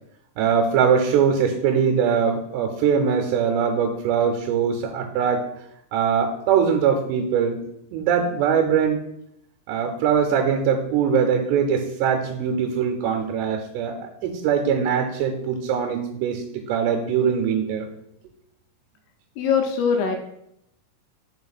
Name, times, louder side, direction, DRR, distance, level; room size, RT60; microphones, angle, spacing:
voice 1, 0.4-5.4 5.9-7.6 7.9-9.0 9.7-16.4 16.7-17.9, right 7 dB, 85° right, 3 dB, 2.8 m, -22 dB
voice 2, 19.4-20.2, left 6 dB, 85° left, 4 dB, 2.7 m, -21 dB
5.6 x 4.5 x 4.0 m, 0.78 s
omnidirectional pair, 4.9 m